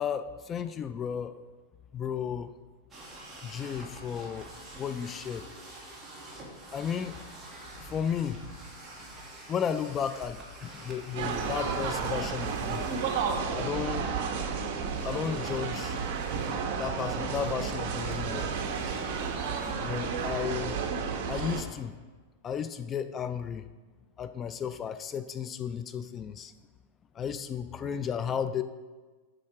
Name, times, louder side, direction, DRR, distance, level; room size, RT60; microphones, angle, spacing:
voice 1, 0.0-1.4 1.9-2.5 3.4-4.5 4.8-5.5 6.7-7.2 7.8-8.4 9.5-12.8 13.5-14.1 15.0-16.0 16.3-16.4 16.8-18.5 19.8-20.8 21.3-21.9 22.4-23.7 24.2-26.5 27.2-28.6, left 7 dB, 25° left, 11 dB, 0.4 m, -33 dB
sound 1, 2.9-20.3, right 1 dB, 10° right, 2.4 m, -46 dB
sound 2, 11.1-21.6, right 5 dB, 55° right, 1.1 m, -32 dB
8.7 x 6.4 x 4.8 m, 1.3 s
supercardioid pair, 135°, 0 cm